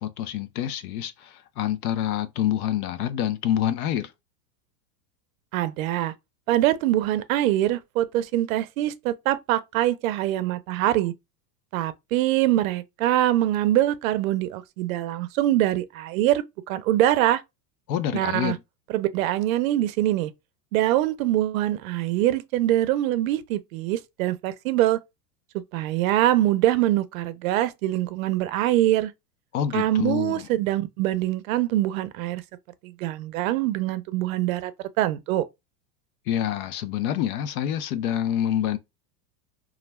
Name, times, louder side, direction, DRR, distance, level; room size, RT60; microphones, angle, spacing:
voice 1, 0.0-4.1 17.9-18.6 29.5-30.5 36.3-38.8, left 10 dB, 70° left, 0.6 m, -27 dB
voice 2, 5.5-6.1 6.5-11.1 11.7-17.4 18.1-18.6 18.9-20.3 20.7-25.0 25.7-29.1 29.7-32.4 32.8-34.7 35.0-35.4, right 14 dB, 65° right, 0.5 m, -24 dB
2.4 x 2.2 x 3.1 m
supercardioid pair, 150°, 45 cm